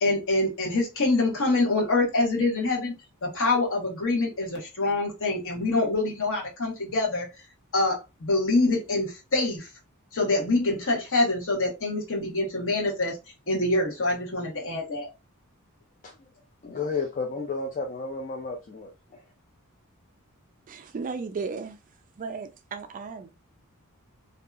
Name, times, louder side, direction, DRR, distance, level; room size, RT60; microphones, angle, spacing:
voice 1, 0.0-2.9 3.2-7.3 7.7-9.7 10.1-13.2 13.5-15.1, left 2 dB, 65° left, 1.0 m, -25 dB
voice 2, 16.6-19.2, left 4 dB, 35° left, 0.4 m, -32 dB
voice 3, 20.7-21.8 22.2-23.3, right 4 dB, 35° right, 0.3 m, -35 dB
2.6 x 2.3 x 2.4 m
head